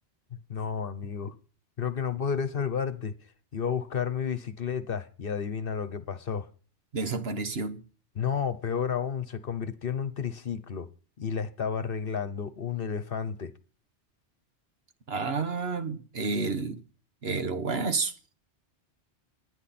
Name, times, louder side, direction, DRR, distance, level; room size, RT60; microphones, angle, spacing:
voice 1, 0.5-1.3 1.8-3.1 3.5-6.5 8.2-10.9 11.2-13.5, left 7 dB, 55° left, 1.1 m, -31 dB
voice 2, 6.9-7.8 15.1-16.8 17.2-18.1, right 4 dB, 60° right, 1.6 m, -30 dB
27.5 x 9.9 x 4.3 m
omnidirectional pair, 1.2 m